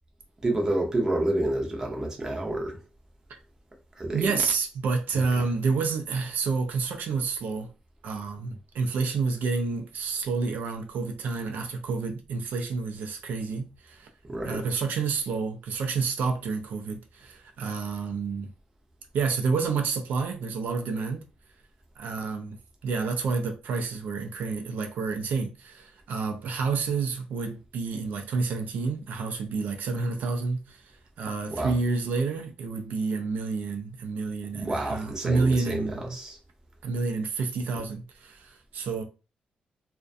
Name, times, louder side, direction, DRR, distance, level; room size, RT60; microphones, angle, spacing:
voice 1, 0.4-2.8 4.0-4.4 5.1-5.4 14.3-14.8 31.5-31.8 34.5-36.4, right 1 dB, 20° right, 0.5 m, -29 dB
voice 2, 4.1-7.7 8.0-14.1 14.4-18.5 19.1-21.2 22.0-22.6 22.8-36.2 36.8-39.0, right 4 dB, 75° right, 0.4 m, -29 dB
2.4 x 2.1 x 2.5 m
wide cardioid pair, 160°, 3 cm